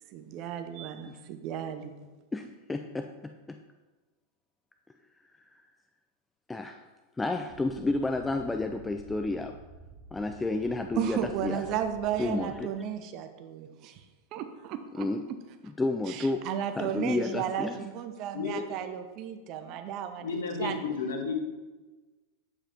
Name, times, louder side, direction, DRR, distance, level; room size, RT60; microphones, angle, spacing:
voice 1, 0.1-2.0 10.9-14.0 14.3-15.1 16.1-20.8, right 9 dB, 40° right, 7 dB, 0.6 m, -34 dB
voice 2, 2.3-3.6 6.5-6.8 7.2-9.6 10.1-11.6 12.2-12.7 14.9-15.2 15.8-16.5 16.8-17.8 19.7-19.8, left 2 dB, 10° left, 6 dB, 0.3 m, -31 dB
sound 1, 7.5-12.6, right 4 dB, 20° right, 1.0 m, -50 dB
voice 3, 20.2-21.4, left 4 dB, 65° left, 3 dB, 1.1 m, -32 dB
8.5 x 4.9 x 3.5 m, 1.2 s
figure-of-eight pair, 90°, 0 cm